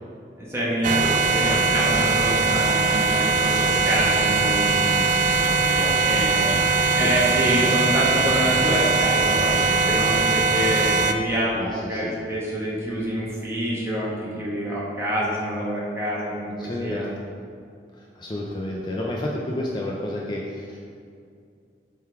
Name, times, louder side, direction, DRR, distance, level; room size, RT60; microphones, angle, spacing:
voice 1, 0.4-5.0 5.3-5.8 6.0-6.6 7.0-17.1, equal, 15° right, -6 dB, 1.4 m, -27 dB
sound 1, 0.8-11.1, right 4 dB, 45° right, 0.3 m, -21 dB
voice 2, 1.0-2.6 4.4-4.6 5.5-6.0 7.0-7.1 9.9-10.0 11.5-12.2 16.6-17.1 17.9-20.8, left 1 dB, 25° left, -2 dB, 0.5 m, -31 dB
7.4 x 3.7 x 4.8 m, 2.4 s
head